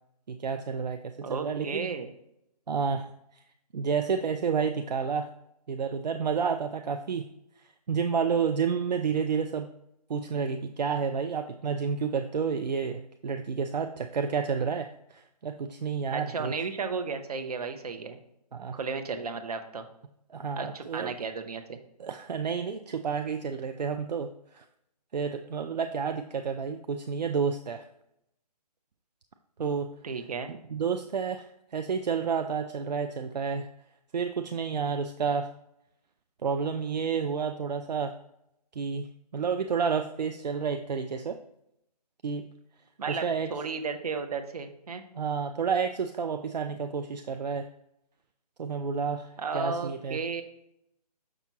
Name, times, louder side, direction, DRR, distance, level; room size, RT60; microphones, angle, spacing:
voice 1, 0.3-1.9 2.7-3.1 3.7-5.3 5.7-7.2 7.9-9.7 10.1-16.5 18.5-18.8 20.3-21.1 22.0-24.7 25.1-27.8 29.6-29.9 30.5-33.7 34.1-35.5 36.4-38.1 38.7-41.4 42.2-42.4 43.1-43.5 45.1-47.7 48.6-50.2, right 6 dB, 80° right, 7 dB, 0.5 m, -30 dB
voice 2, 1.2-2.1 16.1-18.2 18.7-19.9 20.6-21.8 30.0-30.6 43.0-45.0 49.4-50.4, right 5 dB, 65° right, 7 dB, 1.0 m, -34 dB
6.6 x 6.1 x 3.0 m, 0.79 s
hypercardioid pair, 150°, 21 cm